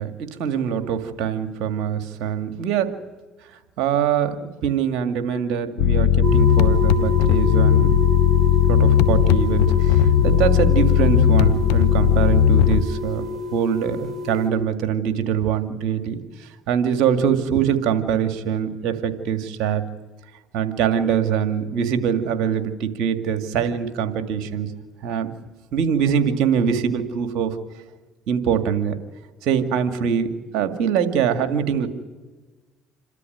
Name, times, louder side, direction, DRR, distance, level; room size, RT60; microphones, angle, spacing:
voice 1, 0.0-2.9 3.5-7.9 8.7-13.2 13.5-19.8 20.5-24.7 25.0-25.3 25.7-27.6 28.3-29.0 29.4-31.9, right 8 dB, 70° right, 7 dB, 2.2 m, -23 dB
sound 1, 5.8-12.8, left 10 dB, 80° left, 0.9 m, -17 dB
sound 2, 6.2-14.5, left 2 dB, 30° right, 6.0 m, -28 dB
28.0 x 13.5 x 9.3 m, 1.3 s
hypercardioid pair, 70°, 0 cm